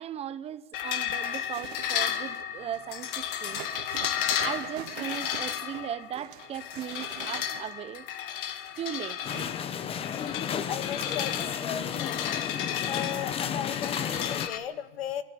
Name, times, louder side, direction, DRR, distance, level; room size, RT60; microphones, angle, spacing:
voice 1, 0.0-3.6 4.4-8.0 8.8-9.2, right 10 dB, 20° right, 0.8 m, -37 dB
sound 1, 0.7-14.6, left 10 dB, 60° left, 2.0 m, -34 dB
sound 2, 1.5-2.5 3.0-8.0 8.7-9.6 10.0-12.1 12.5-13.5 13.7-14.0 14.2-14.3, right 14 dB, 60° right, 1.2 m, -46 dB
sound 3, 9.2-14.5, left 8 dB, 20° left, 1.0 m, -33 dB
voice 2, 10.7-15.2, left 9 dB, 80° left, 2.0 m, -36 dB
26.5 x 14.5 x 9.8 m
hypercardioid pair, 140°, 30 cm